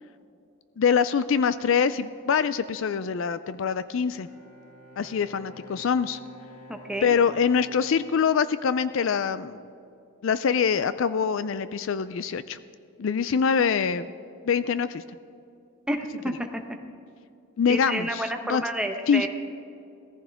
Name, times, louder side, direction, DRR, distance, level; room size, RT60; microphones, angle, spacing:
voice 1, 0.8-4.3 5.0-6.2 7.0-9.6 10.2-12.6 13.0-14.1 14.4-15.0 17.6-18.6 19.1-19.3, left 6 dB, 60° left, 14 dB, 0.4 m, -24 dB
Bowed string instrument, 3.8-9.2, left 1 dB, 80° left, 4.3 m, -49 dB
voice 2, 6.7-7.1 15.9-16.4 17.7-19.3, right 1 dB, 5° right, 3 dB, 0.9 m, -30 dB
18.0 x 14.5 x 3.5 m, 2.5 s
head